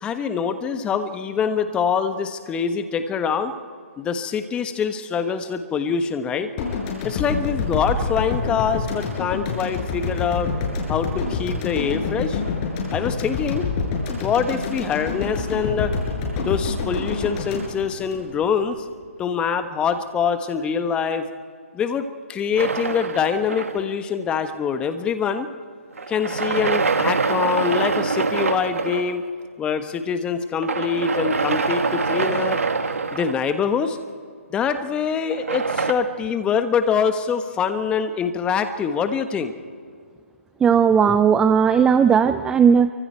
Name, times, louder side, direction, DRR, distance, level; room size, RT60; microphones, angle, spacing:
voice 1, 0.0-3.5 4.0-6.5 7.0-10.5 10.9-12.4 12.9-13.7 14.2-15.9 16.4-18.8 19.2-21.3 21.7-25.5 26.1-29.2 29.6-32.6 33.1-34.0 34.5-39.5, left 6 dB, 15° left, 9 dB, 1.2 m, -24 dB
sound 1, 6.6-18.8, left 4 dB, 30° left, 6.1 m, -27 dB
sound 2, 22.6-24.1 26.0-29.1 30.6-33.8 35.3-35.9, right 4 dB, 80° right, 1.8 m, -24 dB
voice 2, 40.6-42.9, right 7 dB, 10° right, 11 dB, 0.4 m, -16 dB
28.5 x 24.5 x 4.5 m, 2.1 s
hypercardioid pair, 145°, 7 cm